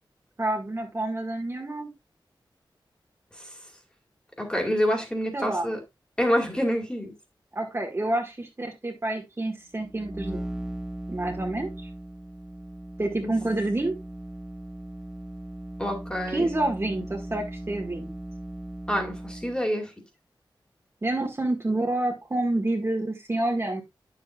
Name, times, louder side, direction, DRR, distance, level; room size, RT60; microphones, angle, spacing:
voice 1, 0.4-1.9 5.3-5.7 7.6-10.4 11.1-11.9 13.0-14.0 16.3-18.1 21.0-23.8, right 2 dB, 30° right, 1.9 m, -28 dB
voice 2, 4.4-5.8 6.2-7.1 13.2-13.3 15.8-16.6 18.9-19.9, equal, 10° left, 2.4 m, -27 dB
sound 1, 9.8-19.7, right 1 dB, 5° right, 0.7 m, -38 dB
9.2 x 7.3 x 2.4 m
wide cardioid pair, 80°, 8 cm